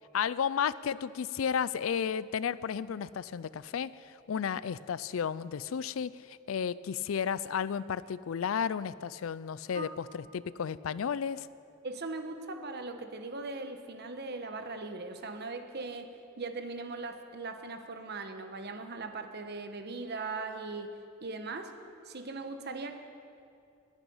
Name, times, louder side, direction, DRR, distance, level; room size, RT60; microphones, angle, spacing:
voice 1, 0.1-3.9 4.3-11.5, left 7 dB, 85° left, 18 dB, 0.4 m, -33 dB
voice 2, 11.8-20.9 21.2-21.7 22.0-23.0, right 3 dB, 55° right, 7 dB, 1.1 m, -39 dB
21.0 x 9.1 x 5.6 m, 2.5 s
head